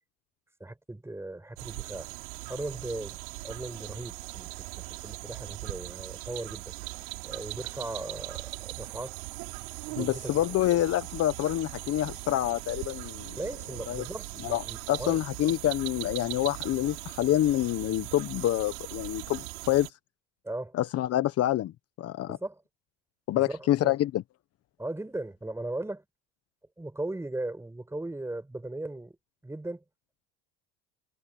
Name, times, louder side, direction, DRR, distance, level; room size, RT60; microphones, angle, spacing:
voice 1, 0.6-2.1 2.5-3.2 3.4-6.7 7.2-9.1 9.9-10.4 13.4-15.2 20.4-20.7 22.3-22.6 23.3-24.0 24.8-26.0 26.8-29.2 29.4-29.8, right 2 dB, 10° right, 4.9 m, -38 dB
sound 1, 1.6-19.9, right 28 dB, 85° right, 5.3 m, -40 dB
voice 2, 10.0-13.4 13.9-14.1 14.4-19.9 20.7-21.7 22.0-22.4 23.3-24.2, left 13 dB, 50° left, 1.0 m, -27 dB
supercardioid pair, 105°, 32 cm